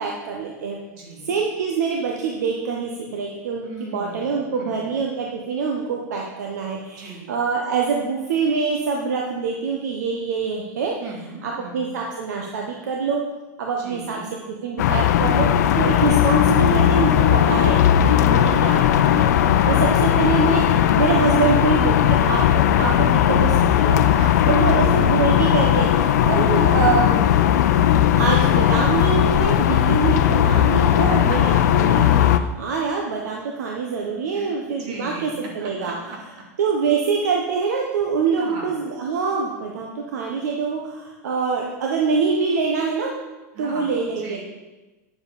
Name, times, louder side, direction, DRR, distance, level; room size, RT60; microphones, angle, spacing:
voice 1, 0.0-0.8 1.2-10.9 11.4-13.2 13.6-19.3 19.7-24.0 24.5-27.3 27.9-32.2 32.6-35.3 35.5-35.9 36.6-43.1 43.6-44.4, right 5 dB, 85° right, 0 dB, 1.1 m, -25 dB
voice 2, 0.9-1.4 3.6-5.0 6.9-7.3 11.0-11.9 13.8-14.3 18.2-18.6 19.5-20.0 24.0-25.1 31.1-32.1 34.3-35.3 35.6-36.4 38.3-38.8 43.5-44.4, right 3 dB, 60° right, -1 dB, 2.9 m, -38 dB
sound 1, 14.8-32.4, left 10 dB, 80° left, 0.5 m, -17 dB
9.4 x 7.0 x 4.2 m, 1.1 s
hypercardioid pair, 110°, 9 cm